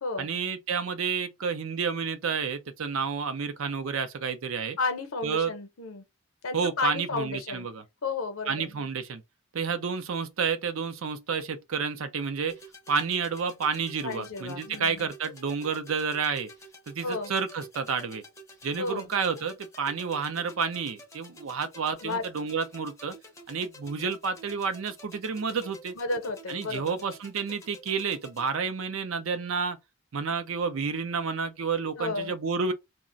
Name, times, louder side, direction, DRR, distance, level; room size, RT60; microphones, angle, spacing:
voice 1, 0.2-4.8 5.2-5.5 6.5-7.8 8.5-9.2 9.5-12.5 12.9-16.5 16.9-18.2 18.6-23.1 23.5-25.9 26.5-29.8 30.1-32.7, right 5 dB, 65° right, 0.5 m, -30 dB
voice 2, 4.8-6.0 6.4-7.7 8.0-8.9 14.0-15.1 17.0-17.3 18.8-19.1 22.0-22.2 26.0-26.9 32.0-32.3, left 3 dB, 70° left, 0.7 m, -32 dB
sound 1, 12.5-28.5, right 1 dB, 15° left, 0.5 m, -50 dB
2.4 x 2.1 x 3.7 m
head